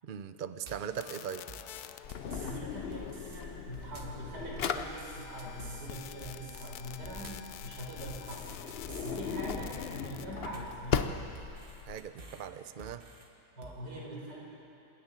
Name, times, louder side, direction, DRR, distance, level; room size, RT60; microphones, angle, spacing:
voice 1, 0.0-1.5 11.9-13.0, right 8 dB, 55° right, 11 dB, 0.5 m, -40 dB
sound 1, 0.7-1.0 1.5-2.6 2.9-3.4 3.7-4.2 4.8-5.9 6.2-6.7 7.0-7.5 8.1-9.2 9.5-10.0 10.3-10.8 11.3-12.5 12.8-13.3 13.6-13.8, right 2 dB, 35° right, 1.7 m, -50 dB
sound 2, 1.0-3.9 4.8-10.3, left 12 dB, 75° left, 1.1 m, -49 dB
Drawer open or close, 2.0-12.0, left 7 dB, 50° left, 0.7 m, -38 dB
voice 2, 2.3-8.5 9.0-11.0 13.6-14.4, right 1 dB, 90° right, -3 dB, 5.2 m, -43 dB
27.5 x 10.5 x 8.9 m, 2.9 s
omnidirectional pair, 1.8 m